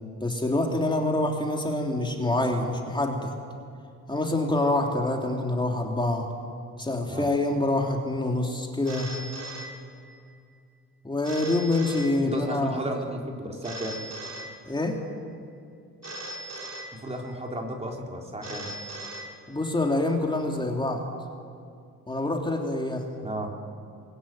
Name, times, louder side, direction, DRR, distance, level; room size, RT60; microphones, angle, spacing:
voice 1, 0.2-3.3 4.1-6.3 6.8-9.1 11.0-12.8 14.6-15.0 19.5-21.0 22.1-23.0, left 2 dB, 15° left, 1 dB, 3.2 m, -26 dB
Telephone, 8.9-10.4 11.2-12.7 13.6-15.1 16.0-17.5 18.4-19.9, right 1 dB, 55° right, 4.4 m, -40 dB
voice 2, 12.2-13.9 16.9-18.7 23.2-23.5, right 1 dB, 20° right, 1 dB, 3.9 m, -33 dB
26.0 x 21.5 x 9.2 m, 2.4 s
cardioid pair, 90°, 30 cm